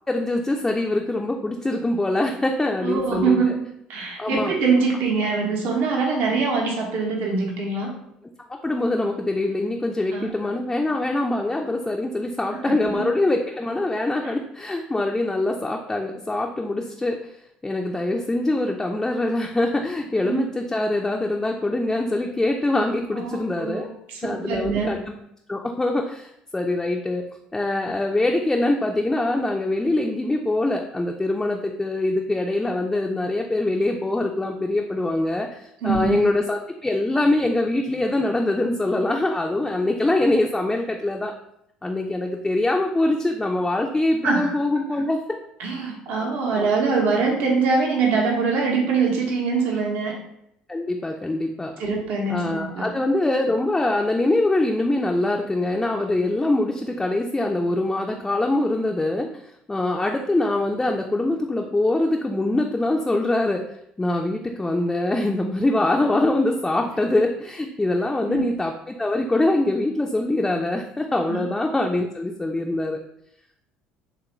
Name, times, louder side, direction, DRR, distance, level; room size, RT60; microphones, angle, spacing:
voice 1, 0.1-3.4 4.2-4.5 8.6-17.2 17.6-23.9 24.2-25.0 25.5-27.2 27.5-41.3 41.8-45.4 46.6-46.7 50.7-51.7 52.3-59.3 59.7-63.6 64.0-73.0, left 2 dB, 15° left, 1 dB, 0.3 m, -23 dB
voice 2, 2.8-3.6 3.9-7.9 10.1-10.5 12.5-13.1 14.2-14.3 20.2-20.4 23.1-25.0 35.8-36.3 44.2-44.6 45.6-50.2 51.8-52.9 68.3-68.5 71.3-71.5, right 4 dB, 65° right, -1 dB, 0.7 m, -23 dB
3.1 x 2.4 x 3.0 m, 0.76 s
hypercardioid pair, 65°, 3 cm